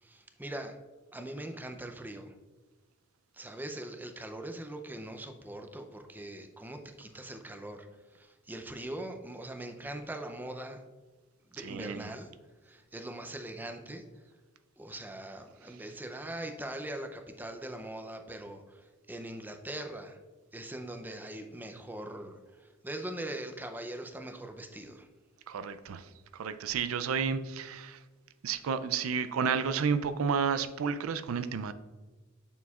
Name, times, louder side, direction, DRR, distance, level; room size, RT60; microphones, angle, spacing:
voice 1, 0.0-0.8 1.1-2.3 3.3-10.8 11.5-12.3 12.6-14.0 14.8-20.2 20.5-25.1, right 1 dB, 10° right, 6 dB, 0.5 m, -41 dB
voice 2, 11.6-12.1 25.5-28.0 28.4-31.7, right 6 dB, 85° right, 12 dB, 0.4 m, -31 dB
7.0 x 6.3 x 2.4 m, 1.2 s
head